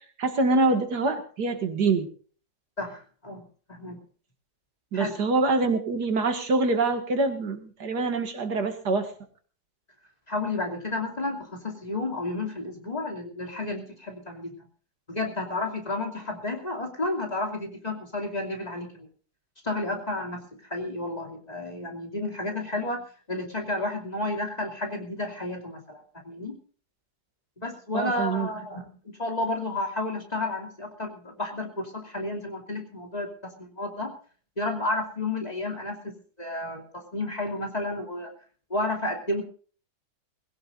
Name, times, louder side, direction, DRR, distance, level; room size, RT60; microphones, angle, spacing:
voice 1, 0.2-2.1 4.9-9.1 27.9-28.5, right 3 dB, 70° right, 7 dB, 2.5 m, -25 dB
voice 2, 2.8-3.4 3.7-4.0 4.9-5.1 10.3-14.5 15.1-19.1 19.6-26.5 27.6-28.8 29.2-34.1 34.6-36.1 36.4-38.3 38.7-39.4, left 2 dB, 20° left, 2 dB, 2.7 m, -31 dB
21.5 x 16.5 x 2.6 m, 0.41 s
omnidirectional pair, 1.9 m